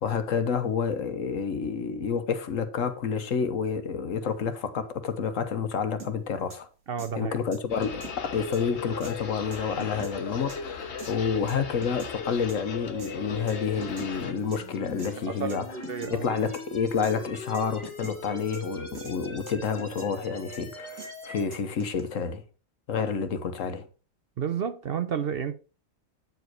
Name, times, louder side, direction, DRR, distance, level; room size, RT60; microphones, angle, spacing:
voice 1, 0.0-6.7 7.2-15.7 16.0-22.4 22.9-23.9, left 6 dB, 75° left, 1.4 m, -29 dB
sound 1, 6.0-6.1 6.5-6.6 7.0-7.1 7.5-8.2 8.5-8.6 9.0-9.1 9.5-10.1 10.5-10.6 11.0-11.1 11.5-12.1 12.5-12.6 13.0-13.1 13.5-14.1 14.5-14.6 15.0-15.1 15.5-15.6 15.8-16.1 16.5-16.6 17.0-17.1 17.5-18.1 18.5-18.6 18.9-19.1 19.5-20.1 20.5-20.6 21.0-21.1 21.5-22.0, right 4 dB, 75° right, 2.2 m, -43 dB
voice 2, 6.9-7.3 15.3-16.3 24.4-25.6, right 7 dB, 55° right, 0.8 m, -31 dB
sound 2, 7.7-14.3, left 6 dB, 60° left, 1.3 m, -37 dB
sound 3, 13.4-21.4, left 2 dB, 20° left, 1.8 m, -43 dB
9.1 x 5.0 x 4.5 m
omnidirectional pair, 1.4 m